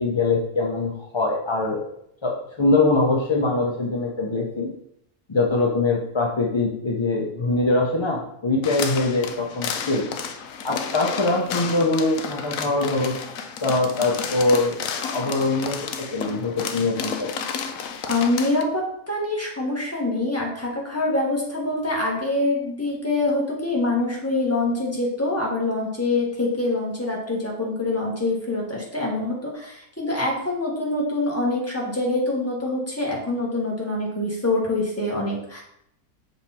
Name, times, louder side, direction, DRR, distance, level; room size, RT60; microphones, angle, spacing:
voice 1, 0.0-1.9 2.2-4.7 5.3-10.0 10.6-13.1 13.6-14.8 15.1-17.3, left 2 dB, 45° left, -1 dB, 0.3 m, -23 dB
sound 1, 8.6-18.6, left 6 dB, 70° left, 1.0 m, -32 dB
voice 2, 18.1-35.6, left 2 dB, 10° left, -3 dB, 1.4 m, -25 dB
6.2 x 4.0 x 4.2 m, 0.73 s
omnidirectional pair, 1.6 m